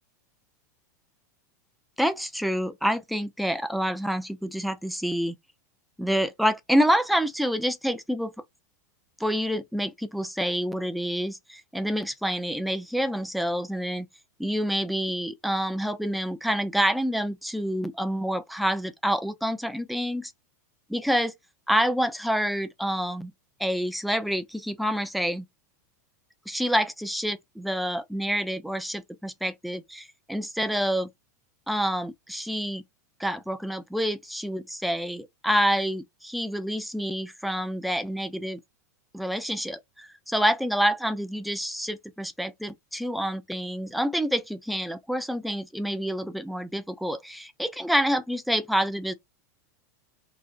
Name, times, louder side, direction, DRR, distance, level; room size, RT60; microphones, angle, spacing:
voice 1, 2.0-5.4 6.0-8.3 9.2-14.1 14.4-20.3 20.9-21.3 21.7-23.3 23.6-25.5 26.5-31.1 31.7-32.8 33.2-38.6 39.1-49.1, equal, ahead, 0.3 m, -27 dB
3.2 x 2.0 x 3.7 m
supercardioid pair, 150°, 9 cm